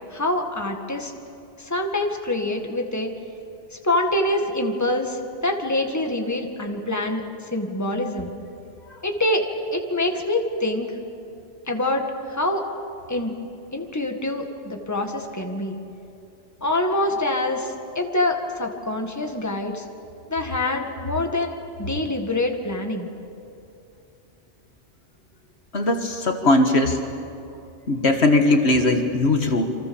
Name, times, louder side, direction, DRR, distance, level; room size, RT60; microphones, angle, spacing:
voice 1, 0.1-1.1 1.7-3.1 3.8-7.2 7.5-8.3 9.0-10.9 11.7-12.0 12.3-12.6 13.1-13.3 13.7-15.8 16.6-19.8 20.3-23.1, left 1 dB, 15° left, 3 dB, 1.9 m, -25 dB
voice 2, 25.7-27.0 27.9-29.7, left 2 dB, 60° left, 5 dB, 1.9 m, -19 dB
29.0 x 25.0 x 7.1 m, 2.7 s
omnidirectional pair, 1.2 m